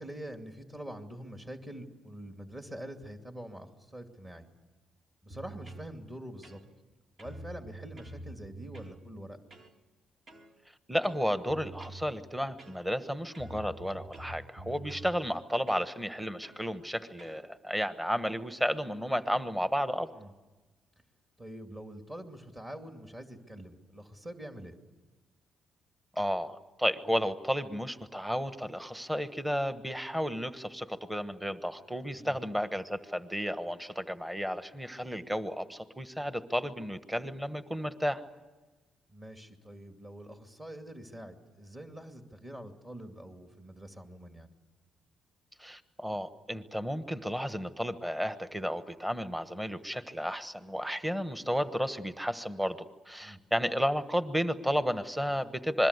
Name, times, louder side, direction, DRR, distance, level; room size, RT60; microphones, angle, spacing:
voice 1, 0.0-4.5 5.2-6.6 7.2-9.4 20.1-20.3 21.4-24.7 32.2-32.4 39.1-44.5 53.2-53.4, right 1 dB, 25° right, 5 dB, 2.5 m, -45 dB
sound 1, 5.3-5.9 6.4-6.9 7.2-9.0 9.5-9.7 10.3-10.5 11.0-12.1 12.6-13.1 13.3-15.1 15.7-15.9 16.4-16.7 17.2-17.4, right 2 dB, 45° right, 2.3 m, -47 dB
voice 2, 10.9-20.1 26.1-38.2 45.6-55.9, equal, 5° right, 11 dB, 1.2 m, -32 dB
26.5 x 21.5 x 8.2 m, 1.2 s
cardioid pair, 90°, 0 cm